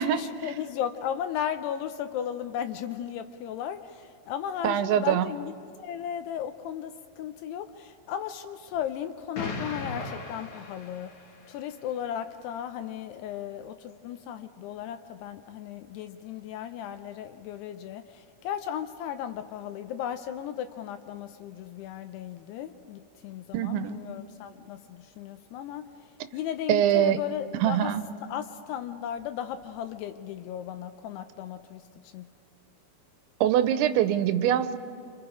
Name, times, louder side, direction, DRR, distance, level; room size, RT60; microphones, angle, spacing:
voice 1, 0.0-11.1 11.5-27.9 28.3-32.3, left 9 dB, 80° left, 9 dB, 2.5 m, -36 dB
voice 2, 4.6-5.3 23.5-24.0 26.7-27.2 27.6-28.0 33.4-34.8, right 10 dB, 85° right, 11 dB, 3.1 m, -23 dB
Explosion, 9.3-11.5, left 3 dB, 50° left, 2.6 m, -37 dB
28.5 x 26.5 x 4.9 m, 2.4 s
omnidirectional pair, 5.2 m